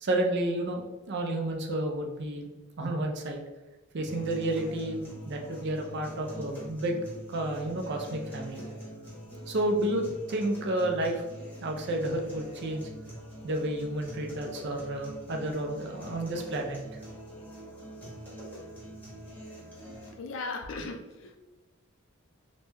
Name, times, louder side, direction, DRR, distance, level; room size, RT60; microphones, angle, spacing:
voice 1, 0.0-2.5 2.8-3.4 3.9-7.0 7.3-8.6 9.5-11.2 11.6-12.9 13.4-16.8, right 1 dB, 55° right, 2 dB, 0.5 m, -31 dB
sound 1, 4.1-20.1, equal, 10° left, 0.9 m, -44 dB
voice 2, 20.2-21.4, left 3 dB, 60° left, 4 dB, 0.4 m, -37 dB
3.0 x 2.1 x 3.3 m, 1.1 s
head